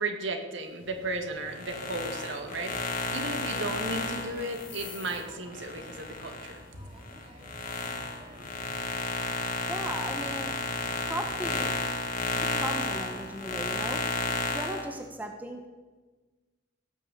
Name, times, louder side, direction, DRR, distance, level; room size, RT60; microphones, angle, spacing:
voice 1, 0.0-6.8, right 2 dB, 60° right, 5 dB, 1.9 m, -35 dB
sound 1, 0.8-14.0, equal, 30° right, 2.4 m, -51 dB
sound 2, 1.5-6.6 7.0-14.9, left 3 dB, 40° left, 1.8 m, -32 dB
voice 2, 9.7-10.6 11.1-11.7 12.3-14.0 14.3-15.7, right 1 dB, 10° right, 3 dB, 1.0 m, -37 dB
17.5 x 6.3 x 8.1 m, 1.3 s
head